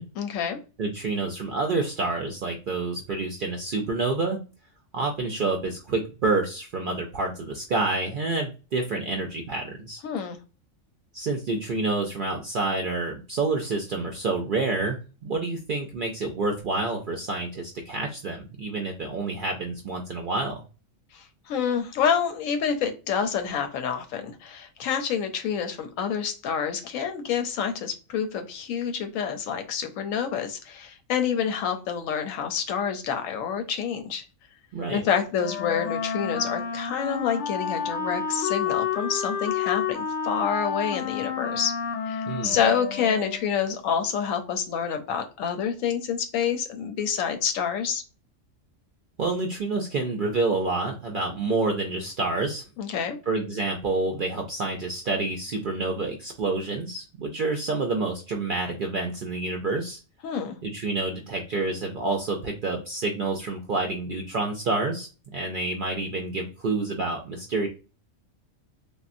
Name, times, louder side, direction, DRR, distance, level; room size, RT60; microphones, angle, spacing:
voice 1, 0.2-0.6 10.0-10.4 21.1-34.2 34.9-41.7 42.0-48.0 52.8-53.2 60.2-60.6, left 7 dB, 85° left, 7 dB, 1.0 m, -28 dB
voice 2, 0.8-4.4 4.9-10.0 11.1-20.6 34.7-35.0 42.3-42.6 49.2-52.6 53.3-60.0 60.6-67.7, right 3 dB, 65° right, 1 dB, 0.5 m, -28 dB
Wind instrument woodwind instrument, 35.4-43.6, left 7 dB, 65° left, 0.8 m, -30 dB
3.5 x 2.1 x 2.5 m, 0.32 s
omnidirectional pair, 1.4 m